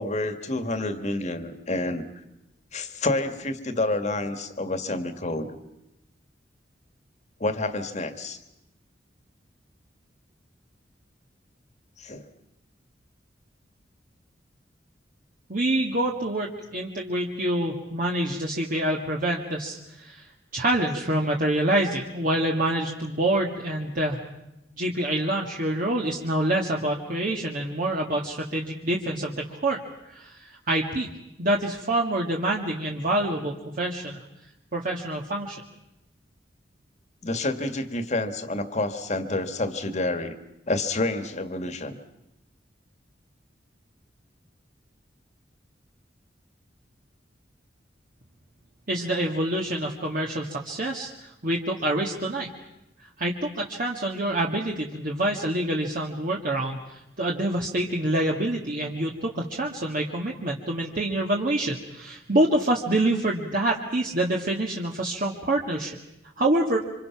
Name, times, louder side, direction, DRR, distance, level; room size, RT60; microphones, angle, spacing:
voice 1, 0.0-2.1 2.7-5.5 7.4-8.4 12.0-12.2 37.2-40.4 40.7-42.0, left 2 dB, 40° left, 9 dB, 1.8 m, -28 dB
voice 2, 15.5-24.2 24.8-31.1 31.4-34.2 34.7-35.6 48.9-52.5 53.2-66.0 66.4-66.8, right 1 dB, 50° right, -1 dB, 1.9 m, -26 dB
27.5 x 26.0 x 5.9 m, 0.89 s
head